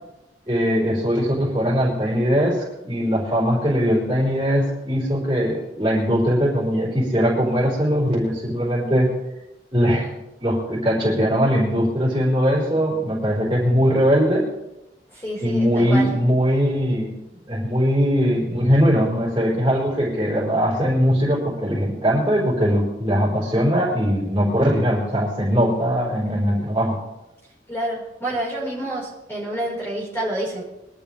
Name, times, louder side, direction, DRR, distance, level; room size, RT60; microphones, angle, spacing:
voice 1, 0.5-9.1 9.7-10.1 10.4-14.5 15.4-17.1 17.5-27.0, equal, 20° right, -5 dB, 4.8 m, -20 dB
voice 2, 15.1-16.1 27.7-30.6, right 1 dB, 15° left, -4 dB, 5.0 m, -28 dB
22.5 x 13.0 x 3.5 m, 0.93 s
head